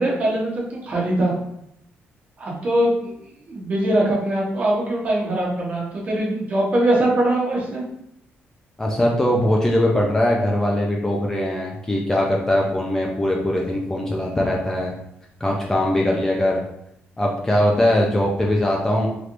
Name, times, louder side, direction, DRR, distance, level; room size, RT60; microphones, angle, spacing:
voice 1, 0.0-1.3 2.4-7.8, right 1 dB, 35° right, -3 dB, 0.9 m, -22 dB
voice 2, 8.8-14.9 15.4-16.6 17.2-19.1, left 1 dB, 10° left, -2 dB, 0.4 m, -21 dB
3.2 x 3.0 x 2.5 m, 0.77 s
cardioid pair, 160°, 4 cm